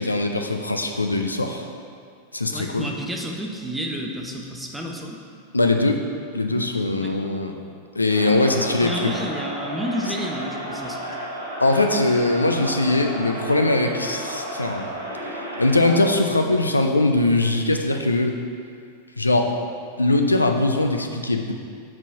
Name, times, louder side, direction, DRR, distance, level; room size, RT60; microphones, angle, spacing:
voice 1, 0.0-1.7 2.3-2.9 5.5-6.0 6.3-7.5 8.0-9.1 11.6-14.9 15.6-18.3 19.2-19.5 20.0-21.5, left 2 dB, 80° left, 4 dB, 0.4 m, -21 dB
voice 2, 2.5-5.2 7.0-7.2 8.8-11.1, equal, 5° right, 0 dB, 0.6 m, -30 dB
Crowd, 8.0-16.2, right 1 dB, 80° right, 1.2 m, -33 dB
4.4 x 4.3 x 5.4 m, 2.3 s
figure-of-eight pair, 90°, 0 cm